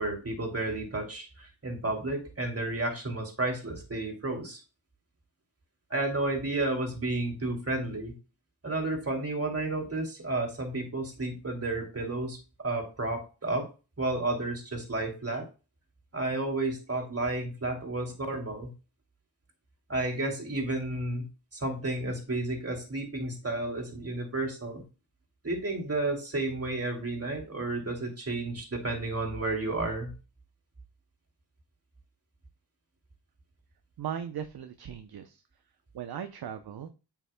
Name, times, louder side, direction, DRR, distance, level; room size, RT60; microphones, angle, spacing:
voice 1, 0.0-4.6 5.9-8.1 8.6-12.4 12.6-13.7 14.0-15.5 16.1-18.7 19.9-21.3 21.5-24.8 25.4-30.1, right 2 dB, 30° right, 1 dB, 2.8 m, -32 dB
voice 2, 34.0-35.4 35.9-36.9, right 8 dB, 55° right, 8 dB, 0.8 m, -38 dB
8.1 x 5.9 x 2.2 m, 0.31 s
cardioid pair, 55°, 45 cm